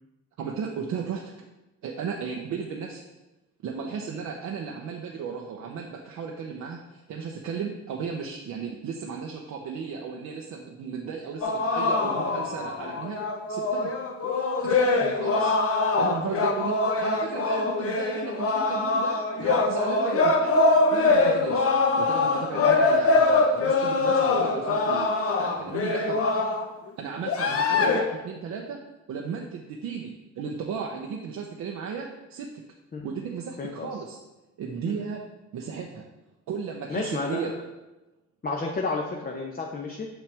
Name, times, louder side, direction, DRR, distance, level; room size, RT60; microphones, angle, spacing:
voice 1, 0.4-1.2 1.8-3.0 3.6-13.2 13.5-13.9 14.3-15.6 16.0-21.7 22.0-26.2 27.0-28.8 29.1-32.5 33.0-34.2 34.6-35.2 35.5-36.0 36.5-37.5, right 6 dB, 70° right, 0 dB, 0.8 m, -35 dB
sound 1, 11.4-26.7 27.2-28.0, left 3 dB, 50° left, 0.9 m, -23 dB
voice 2, 33.6-33.9 34.8-35.0 36.9-37.6 38.4-40.1, left 3 dB, 30° left, 0 dB, 0.8 m, -31 dB
6.6 x 5.9 x 3.4 m, 1.0 s
cardioid pair, 90°, 30 cm